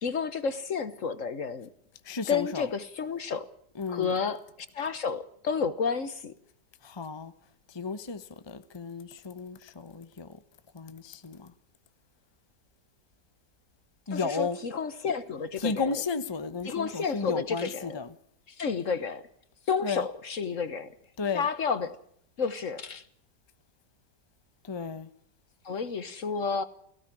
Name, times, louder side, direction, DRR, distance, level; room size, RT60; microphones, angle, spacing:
voice 1, 0.0-1.7 2.3-3.5 3.9-4.4 4.7-6.3 14.1-16.0 16.6-18.0 18.5-19.3 19.7-20.9 21.3-22.0 22.4-23.0 25.6-26.6, left 5 dB, 50° left, 1.4 m, -31 dB
voice 2, 2.0-2.7 3.7-4.1 6.8-7.3 7.7-10.4 10.7-11.5 14.1-14.6 15.6-18.2 19.8-20.1 21.2-21.5 24.6-25.1, left 4 dB, 20° left, 0.8 m, -34 dB
17.5 x 16.5 x 9.9 m
omnidirectional pair, 1.8 m